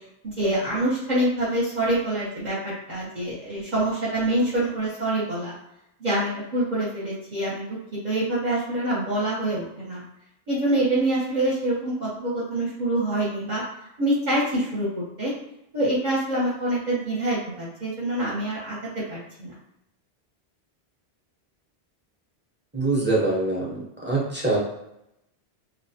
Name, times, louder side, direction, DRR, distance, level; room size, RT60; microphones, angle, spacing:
voice 1, 0.2-5.5 6.0-7.7 8.0-10.0 10.5-13.6 14.0-14.9 15.2-15.3 15.7-18.8 19.1-19.6, right 1 dB, 50° right, -7 dB, 0.7 m, -25 dB
voice 2, 22.7-23.8 24.1-24.6, right 2 dB, 15° right, -5 dB, 0.5 m, -23 dB
2.9 x 2.1 x 2.6 m, 0.83 s
omnidirectional pair, 1.1 m